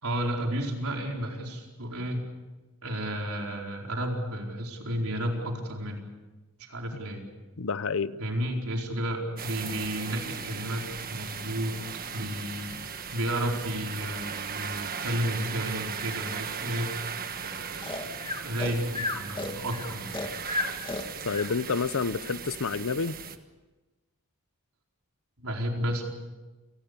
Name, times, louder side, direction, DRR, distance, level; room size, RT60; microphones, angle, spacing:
voice 1, 0.0-2.3 2.8-6.0 6.6-7.2 8.2-11.7 12.1-16.9 17.4-20.2 25.4-26.1, equal, 70° right, 4.7 m, -32 dB
voice 2, 7.6-8.2 21.2-23.2, left 5 dB, 65° left, 0.7 m, -29 dB
sound 1, 9.4-23.4, right 6 dB, 40° right, 1.4 m, -37 dB
Breathing, 17.8-21.5, left 2 dB, 25° left, 2.3 m, -33 dB
28.5 x 19.5 x 6.9 m
head